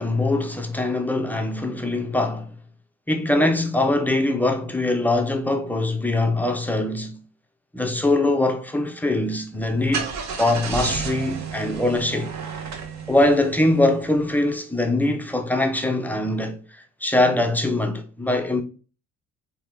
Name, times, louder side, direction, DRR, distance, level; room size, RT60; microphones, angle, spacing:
voice 1, 0.0-2.5 3.1-7.2 7.7-12.3 13.1-18.6, left 2 dB, 5° left, 0.4 m, -22 dB
Car / Engine starting, 9.5-14.2, right 6 dB, 40° right, 0.7 m, -32 dB
4.1 x 2.3 x 3.5 m
figure-of-eight pair, 55°, 43 cm